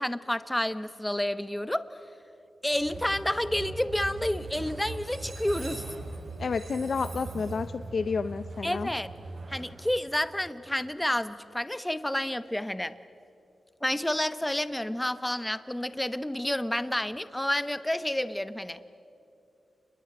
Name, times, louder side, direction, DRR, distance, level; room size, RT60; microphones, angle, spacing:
voice 1, 0.0-1.9 2.6-5.8 8.6-9.1 9.5-12.9 13.8-18.8, left 1 dB, 10° left, 13 dB, 0.9 m, -30 dB
Train, 2.7-10.7, right 3 dB, 60° right, 3.8 m, -40 dB
voice 2, 6.4-8.9, left 5 dB, 60° left, 11 dB, 0.6 m, -30 dB
28.5 x 21.5 x 9.3 m, 2.7 s
wide cardioid pair, 115°, 0 cm